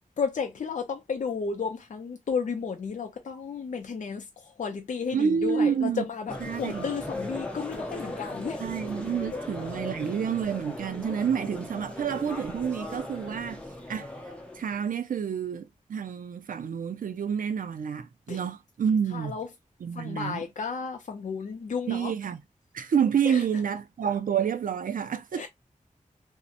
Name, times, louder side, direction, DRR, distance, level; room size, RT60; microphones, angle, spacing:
voice 1, 0.2-8.6 9.3-9.4 18.3-18.4 19.1-19.5 19.9-22.1 23.2-23.6 25.3-25.5, left 5 dB, 70° left, 0.4 m, -33 dB
voice 2, 5.1-6.0 6.5-6.9 8.6-13.6 13.9-14.1 14.5-19.3 19.8-20.4 21.9-22.4 22.7-25.4, right 7 dB, 85° right, 0.4 m, -28 dB
sound 1, 6.3-14.9, left 1 dB, 10° left, 0.6 m, -38 dB
2.7 x 2.0 x 2.4 m
wide cardioid pair, 100°, 14 cm